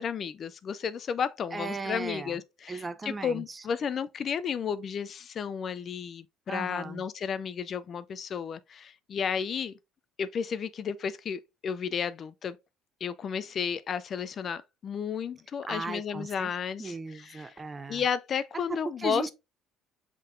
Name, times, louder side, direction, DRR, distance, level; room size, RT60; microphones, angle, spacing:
voice 1, 0.0-9.8 10.2-12.6 13.0-17.5 17.9-19.3, left 7 dB, 40° left, 0.3 m, -33 dB
voice 2, 1.5-2.4 2.7-3.6 6.5-7.0 15.7-16.5 16.8-18.0 18.7-19.3, right 3 dB, 20° right, 0.5 m, -36 dB
5.5 x 3.7 x 2.5 m
cardioid pair, 110°, 0 cm